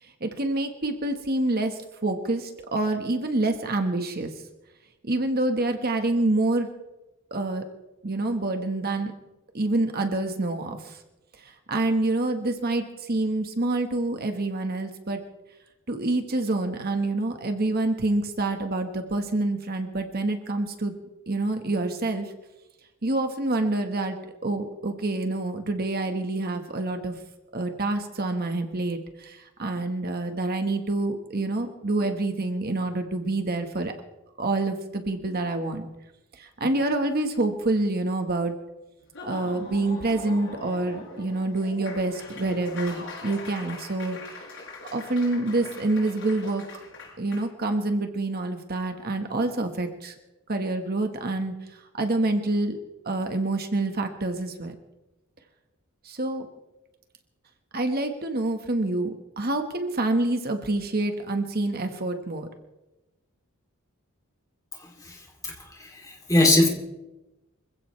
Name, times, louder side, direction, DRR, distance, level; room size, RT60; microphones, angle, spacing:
voice 1, 0.0-4.3 5.0-6.7 7.3-7.7 8.0-9.1 9.5-11.0 11.4-15.2 15.9-21.0 21.3-22.3 23.0-24.2 24.4-27.2 27.5-33.9 34.4-35.9 36.3-38.5 39.3-44.4 44.9-46.8 47.2-50.1 50.5-52.8 53.0-54.7 56.0-56.5 57.7-62.5, right 2 dB, 45° right, 5 dB, 1.4 m, -27 dB
Laughter / Applause, 39.0-47.4, left 3 dB, 60° left, 7.6 m, -42 dB
voice 2, 65.4-66.7, left 2 dB, 15° left, 1 dB, 3.0 m, -22 dB
26.0 x 15.5 x 3.3 m, 1.0 s
head